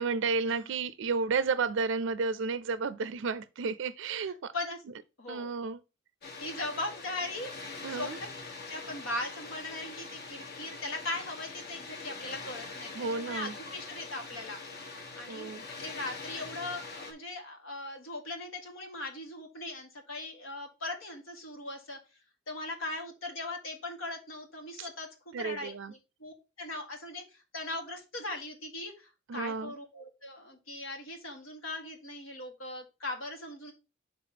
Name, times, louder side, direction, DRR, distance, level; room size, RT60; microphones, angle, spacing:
voice 1, 0.0-4.5 5.3-5.8 7.8-8.2 12.9-13.5 15.3-15.7 25.3-25.9 29.3-29.7, right 4 dB, 65° right, 0.4 m, -32 dB
voice 2, 5.2-5.5 6.4-8.1 8.7-14.6 14.9-22.0 22.5-33.7, left 2 dB, 80° left, 1.8 m, -39 dB
Water, 6.2-17.1, left 3 dB, 55° left, 1.3 m, -43 dB
5.8 x 3.5 x 5.8 m
head